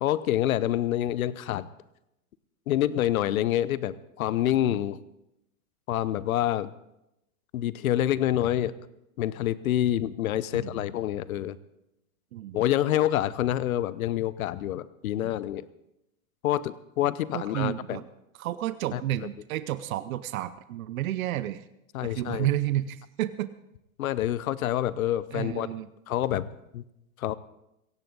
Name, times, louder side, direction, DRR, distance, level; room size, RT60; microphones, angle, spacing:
voice 1, 0.0-1.7 2.7-5.0 5.9-6.7 7.5-8.7 9.2-11.6 12.5-15.7 16.4-18.0 18.9-19.0 21.9-22.5 24.0-25.7 26.1-26.5 26.7-26.8 27.2-27.3, left 12 dB, 85° left, 17 dB, 0.8 m, -27 dB
voice 2, 10.5-10.8 12.3-12.6 17.3-18.0 18.4-21.7 22.0-23.5 25.3-25.9, right 13 dB, 80° right, 14 dB, 0.8 m, -31 dB
16.5 x 16.5 x 3.9 m, 0.85 s
hypercardioid pair, 120°, 41 cm